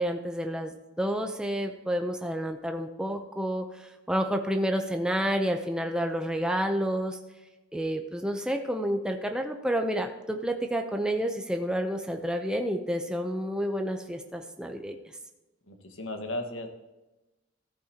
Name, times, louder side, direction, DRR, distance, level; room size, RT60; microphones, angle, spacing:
voice 1, 0.0-7.2 7.7-15.0, equal, 5° right, 4 dB, 0.6 m, -29 dB
voice 2, 15.7-16.7, left 1 dB, 85° left, 4 dB, 1.5 m, -35 dB
14.0 x 8.6 x 2.9 m, 1.0 s
head